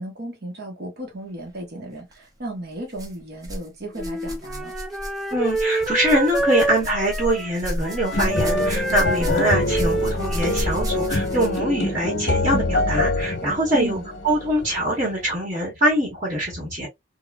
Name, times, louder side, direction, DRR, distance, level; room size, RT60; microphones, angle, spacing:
voice 1, 0.0-4.7 13.7-14.1, right 1 dB, 55° right, 1.0 m, -34 dB
sound 1, 2.0-2.2 2.9-3.7 3.9-11.7 12.7-12.8 13.6-13.7, equal, 20° right, 0.7 m, -32 dB
Wind instrument woodwind instrument, 4.0-11.7, right 1 dB, ahead, 0.3 m, -28 dB
voice 2, 5.3-14.0 14.2-16.9, right 1 dB, 35° right, 1.2 m, -23 dB
sound 2, 8.1-15.3, left 2 dB, 65° left, 0.8 m, -25 dB
3.1 x 2.3 x 2.3 m
head